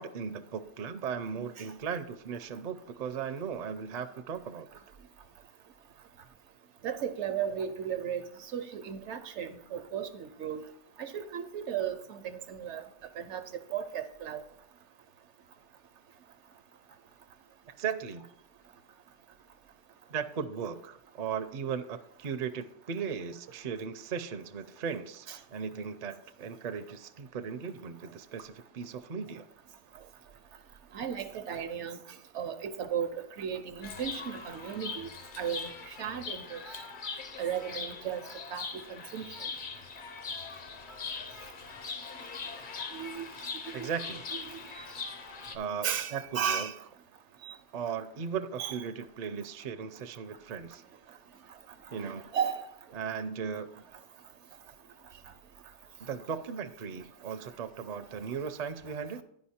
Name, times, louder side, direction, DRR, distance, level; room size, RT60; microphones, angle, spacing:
voice 1, 0.0-5.0 17.8-18.3 20.1-29.5 43.7-44.3 45.5-46.7 47.7-50.8 51.9-52.3 52.9-53.8 56.0-59.2, right 6 dB, 50° right, 0.5 m, -37 dB
voice 2, 6.8-10.6 11.0-12.8 13.2-13.4 13.7-14.4 25.3-25.4 30.9-32.0 32.3-35.1 35.4-36.8 37.4-38.2 38.5-39.5 42.9-43.3 43.5-43.9 44.5-44.6 45.8-46.7 47.4-47.5 48.6-48.7 51.9-52.7, right 8 dB, 75° right, 1.0 m, -35 dB
Chirp tweet, 33.8-45.6, left 5 dB, 50° left, 0.8 m, -41 dB
10.5 x 5.0 x 4.2 m
omnidirectional pair, 1.2 m